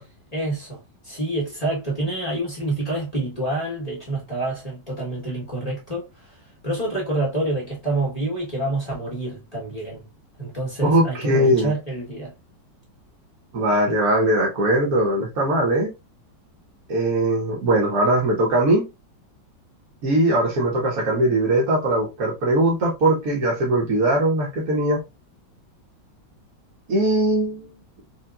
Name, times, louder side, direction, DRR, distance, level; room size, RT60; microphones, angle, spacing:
voice 1, 0.3-0.8 1.0-6.1 6.6-10.1 10.4-12.3, right 2 dB, 25° left, 0.9 m, -27 dB
voice 2, 10.8-11.7 13.5-15.9 16.9-18.9 20.0-25.0 26.9-27.8, right 1 dB, 55° right, 1.5 m, -20 dB
4.3 x 2.3 x 2.3 m
omnidirectional pair, 2.0 m